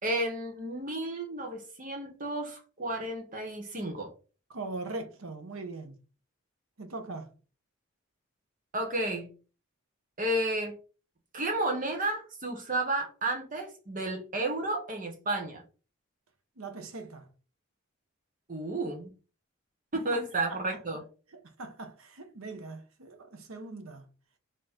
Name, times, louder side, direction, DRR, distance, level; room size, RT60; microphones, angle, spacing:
voice 1, 0.0-4.1 8.7-9.3 10.2-10.7 11.3-15.6 18.5-19.1 19.9-21.0, right 1 dB, 40° right, 1.2 m, -32 dB
voice 2, 4.5-6.0 6.8-7.3 16.6-17.3 20.5-20.6 21.3-24.0, right 3 dB, 80° right, 0.9 m, -41 dB
4.4 x 3.1 x 3.7 m
head